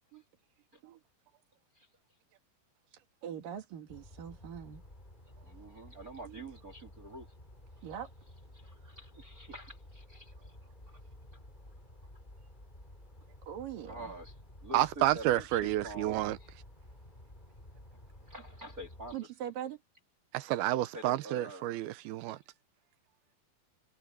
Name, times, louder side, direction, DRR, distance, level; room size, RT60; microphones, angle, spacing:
voice 1, 3.2-4.8 6.2-6.4 7.8-8.1 13.5-14.1 19.1-19.8, right 9 dB, 65° right, 3.9 m, -42 dB
sound 1, 3.9-19.2, left 1 dB, 10° left, 4.0 m, -53 dB
voice 2, 5.5-7.3 9.0-10.3 13.9-14.3 14.6-16.2 18.3-19.2 20.9-21.6, right 1 dB, 30° right, 2.1 m, -46 dB
voice 3, 14.7-16.4 20.3-22.4, right 15 dB, 85° right, 2.7 m, -30 dB
omnidirectional pair, 4.3 m